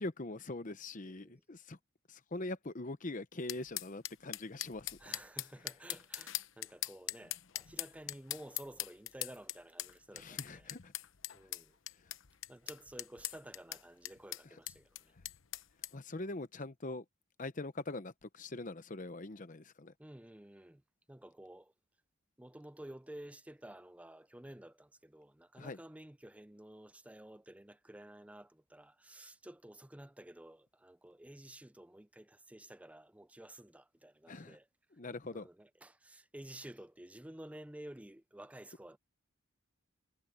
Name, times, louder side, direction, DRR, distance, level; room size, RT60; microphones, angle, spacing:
voice 1, 0.0-1.8 2.1-5.0 5.6-5.7 10.1-10.9 12.0-12.1 14.4-14.6 15.9-17.0 17.4-19.9 25.6-25.8 34.3-34.6 34.9-35.5, left 2 dB, 40° left, 0.9 m, -43 dB
voice 2, 1.1-1.4 5.0-10.7 11.3-11.7 12.5-14.8 20.0-20.8 21.1-21.7 22.4-34.6 35.3-39.0, right 1 dB, 5° right, 0.5 m, -52 dB
sound 1, 3.5-15.9, left 14 dB, 65° left, 0.9 m, -42 dB
head